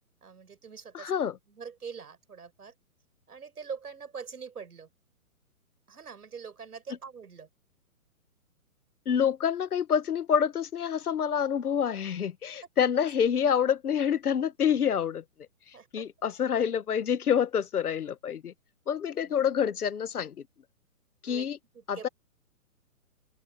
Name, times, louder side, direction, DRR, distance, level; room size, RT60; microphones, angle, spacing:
voice 1, 0.2-1.2 1.5-2.7 3.3-4.9 5.9-7.5 15.7-16.1 19.1-19.4 21.3-21.5 21.7-22.1, right 6 dB, 85° right, 7.4 m, -43 dB
voice 2, 0.9-1.3 9.0-15.2 15.9-18.5 18.9-20.3 21.2-21.6 21.9-22.1, left 8 dB, 80° left, 1.5 m, -27 dB
open air
hypercardioid pair, 150°, 44 cm